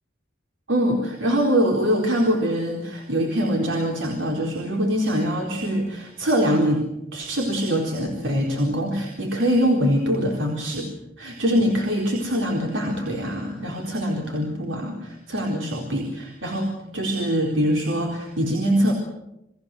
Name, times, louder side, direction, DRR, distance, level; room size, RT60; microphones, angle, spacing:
voice 1, 0.7-6.9 7.1-10.9 11.2-18.9, equal, 85° right, 0 dB, 4.2 m, -23 dB
29.5 x 20.0 x 7.8 m, 0.87 s
head